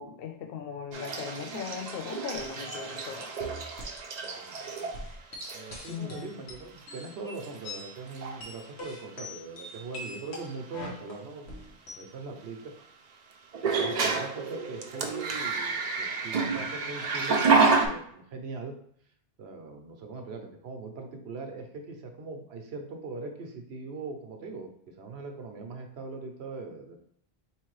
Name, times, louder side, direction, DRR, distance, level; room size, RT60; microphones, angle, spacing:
voice 1, 0.0-3.3 5.9-6.3, left 7 dB, 65° left, 4 dB, 0.8 m, -38 dB
sound 1, 0.9-5.0 5.4-5.8 6.8-6.9 7.4-7.8 8.1-8.4 10.4-10.5 13.5-17.9, right 4 dB, 50° right, 0.6 m, -29 dB
sound 2, 2.3-2.9 3.4-4.0 4.3-4.4 4.6-7.9 8.2-12.1, left 1 dB, 90° left, 1.3 m, -42 dB
voice 2, 4.2-5.0 5.5-11.5 11.9-12.7 13.8-18.8 19.4-27.0, right 3 dB, 80° right, 4 dB, 1.0 m, -41 dB
4.3 x 3.2 x 3.1 m, 0.65 s
omnidirectional pair, 1.1 m